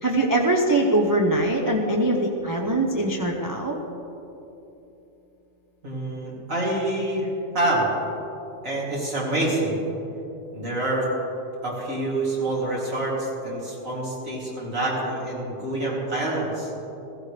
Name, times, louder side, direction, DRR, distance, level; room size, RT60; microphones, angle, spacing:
voice 1, 0.0-3.8, right 1 dB, 20° right, 0 dB, 0.7 m, -22 dB
voice 2, 5.8-7.9 8.6-9.8 10.5-11.1 11.6-16.7, right 1 dB, 75° right, -6 dB, 3.4 m, -27 dB
16.0 x 14.5 x 3.4 m, 3.0 s
omnidirectional pair, 1.4 m